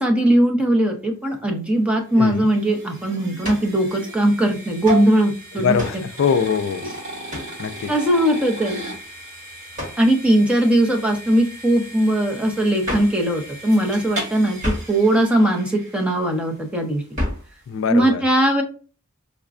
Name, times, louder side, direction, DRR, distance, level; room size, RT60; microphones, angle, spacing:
voice 1, 0.0-5.8 7.9-8.8 10.0-17.0 17.9-18.6, right 1 dB, 5° right, 0.7 m, -19 dB
sound 1, 1.4-16.6, right 1 dB, 65° right, 1.9 m, -36 dB
voice 2, 2.2-2.5 5.5-6.9 7.6-7.9 17.7-18.2, left 6 dB, 65° left, 0.3 m, -22 dB
sound 2, 3.4-3.7 4.8-5.1 5.8-6.1 7.3-7.6 9.7-10.1 12.8-13.2 14.6-15.0 17.1-17.5, left 1 dB, 40° right, 1.6 m, -29 dB
4.9 x 2.2 x 2.4 m
head